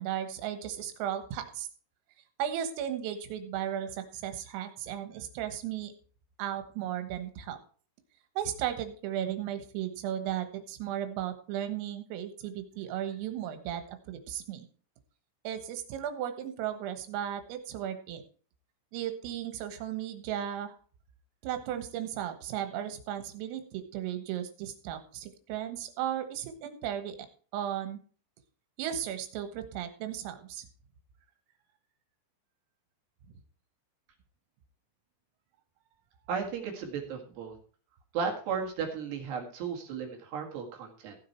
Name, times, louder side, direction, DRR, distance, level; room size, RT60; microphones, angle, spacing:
voice 1, 0.0-1.7 2.4-5.9 6.4-7.6 8.4-14.7 15.5-18.2 18.9-20.7 21.4-27.2 27.5-28.0 28.8-30.7, right 10 dB, 85° right, 8 dB, 3.9 m, -35 dB
voice 2, 36.3-37.6 38.1-41.2, right 6 dB, 60° right, 2 dB, 3.6 m, -35 dB
15.5 x 7.5 x 4.4 m, 0.41 s
omnidirectional pair, 5.9 m